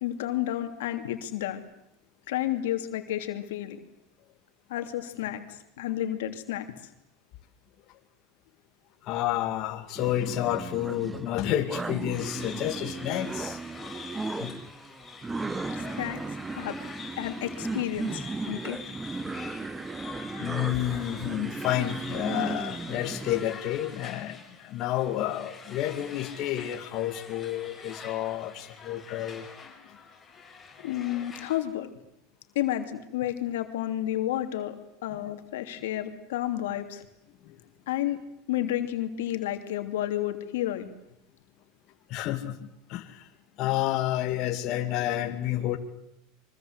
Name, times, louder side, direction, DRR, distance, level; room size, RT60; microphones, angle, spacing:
voice 1, 0.0-1.6 2.3-3.8 4.7-6.7 15.7-16.2 16.5-16.8 17.2-18.8 30.8-31.9 32.5-34.8 35.0-37.0 37.9-38.2 38.5-40.9, left 13 dB, 80° left, 6 dB, 3.0 m, -31 dB
voice 2, 9.0-13.9 14.4-14.7 20.4-30.0 37.5-37.6 42.1-43.3 43.6-45.8, left 13 dB, 50° left, 4 dB, 2.3 m, -30 dB
sound 1, 10.0-23.4, right 3 dB, 15° right, 1.0 m, -36 dB
sound 2, 12.1-31.6, left 5 dB, 15° left, 7.0 m, -45 dB
26.0 x 24.0 x 8.2 m, 0.84 s
supercardioid pair, 125°, 0 cm